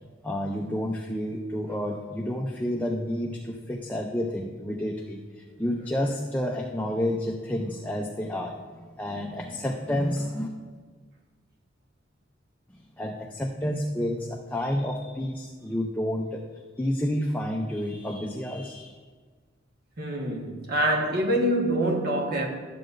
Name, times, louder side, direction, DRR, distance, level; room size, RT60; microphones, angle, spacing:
voice 1, 0.2-10.5 12.7-16.4 16.8-19.0, left 1 dB, 10° left, 0 dB, 0.5 m, -30 dB
voice 2, 20.0-22.5, right 1 dB, 55° right, 0 dB, 1.3 m, -25 dB
12.5 x 7.6 x 2.6 m, 1.5 s
head